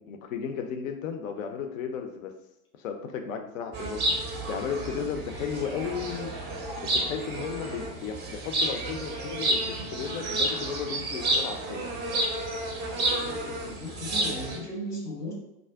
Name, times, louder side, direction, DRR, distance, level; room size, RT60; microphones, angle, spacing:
voice 1, 0.0-2.3 2.8-6.3 6.8-11.9, left 7 dB, 60° left, 6 dB, 0.5 m, -34 dB
sound 1, 3.7-14.6, right 1 dB, 25° right, 0.5 m, -30 dB
voice 2, 13.1-15.3, equal, 90° left, -3 dB, 1.1 m, -37 dB
2.4 x 2.1 x 3.3 m, 0.89 s
figure-of-eight pair, 85°, 45 cm